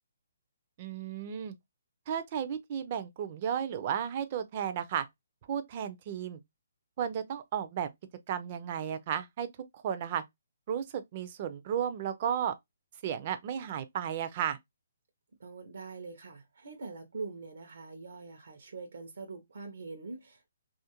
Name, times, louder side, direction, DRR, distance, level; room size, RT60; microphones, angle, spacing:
voice 1, 0.8-1.5 2.1-5.0 5.5-6.4 7.0-7.9 8.3-9.5 9.7-10.2 10.7-12.5 13.0-14.6, right 9 dB, 30° right, 0.4 m, -33 dB
voice 2, 15.4-20.5, right 4 dB, 70° right, 0.6 m, -43 dB
2.5 x 2.4 x 2.8 m
hypercardioid pair, 170°, 0 cm